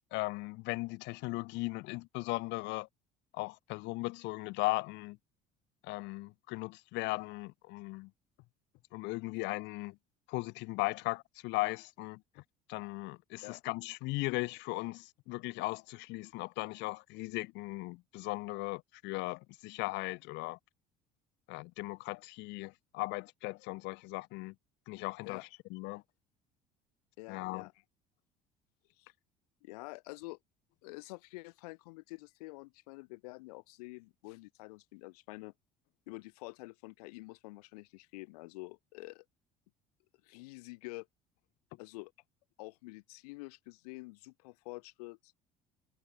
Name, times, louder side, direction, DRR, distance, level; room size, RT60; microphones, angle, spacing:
voice 1, 0.1-2.9 3.3-5.2 5.9-8.1 8.9-9.9 10.3-12.2 12.7-20.6 21.5-24.5 24.9-25.4 25.7-26.0 27.3-27.7, left 23 dB, 70° left, 0.4 m, -37 dB
voice 2, 25.2-25.6 27.2-27.7 29.0-29.1 29.6-30.4 30.8-35.5 36.1-39.3 40.2-41.1 41.8-42.1 42.6-45.3, left 24 dB, 90° left, 2.0 m, -48 dB
supercardioid pair, 80°, 19 cm